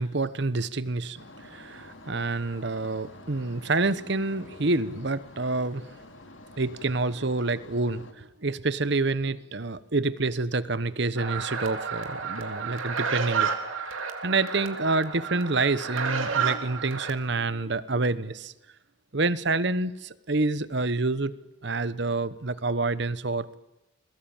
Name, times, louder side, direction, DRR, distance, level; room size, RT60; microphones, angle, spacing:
voice 1, 0.0-5.8 6.6-13.5 14.2-18.5 19.1-21.3 21.6-23.6, right 3 dB, 55° right, 15 dB, 1.0 m, -28 dB
sound 1, 1.1-8.1, left 2 dB, 70° left, 2.9 m, -48 dB
sound 2, 11.2-17.1, right 5 dB, 80° right, 3.2 m, -31 dB
29.5 x 21.5 x 8.9 m, 0.96 s
head